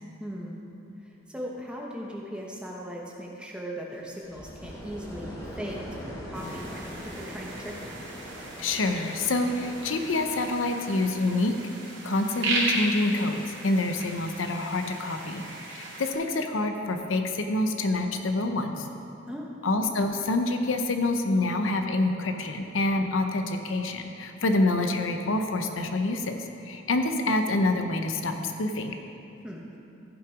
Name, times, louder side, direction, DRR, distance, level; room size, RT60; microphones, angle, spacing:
voice 1, 0.2-0.7 1.0-8.0 19.3-19.6 29.4-29.6, equal, 5° right, -2 dB, 0.9 m, -38 dB
sound 1, 4.0-10.9, equal, 20° left, 2.2 m, -41 dB
sound 2, 6.3-16.1, right 2 dB, 65° right, 2.4 m, -36 dB
voice 2, 8.6-11.5 12.0-15.4 15.7-18.9 19.6-29.0, left 2 dB, 90° left, 6 dB, 0.7 m, -27 dB
15.0 x 5.8 x 4.9 m, 2.8 s
head